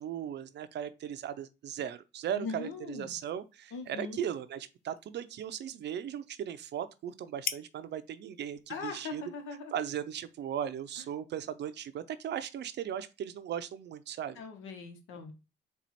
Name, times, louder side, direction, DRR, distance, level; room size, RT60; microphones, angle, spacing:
voice 1, 0.0-9.2 9.7-14.4, right 9 dB, 60° right, 0.5 m, -37 dB
voice 2, 2.3-3.1 3.7-4.2 8.7-9.8 14.3-15.3, left 5 dB, 90° left, 1.0 m, -40 dB
sound 1, 3.1-10.8, left 8 dB, 45° left, 0.4 m, -47 dB
4.4 x 2.4 x 4.1 m
cardioid pair, 90°, 20 cm